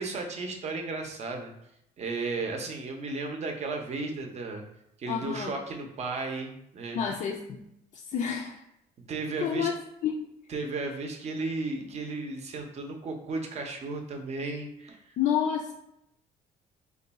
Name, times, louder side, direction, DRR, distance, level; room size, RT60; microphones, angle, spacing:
voice 1, 0.0-1.5 2.0-4.6 5.0-7.0 9.1-9.7 10.5-15.0, right 3 dB, 40° right, 3 dB, 0.6 m, -34 dB
voice 2, 5.1-5.6 6.9-7.6 7.9-8.6 9.4-9.7 10.0-10.3 15.2-15.7, left 8 dB, 50° left, -1 dB, 0.4 m, -29 dB
2.4 x 2.2 x 3.9 m, 0.80 s
cardioid pair, 110°, 17 cm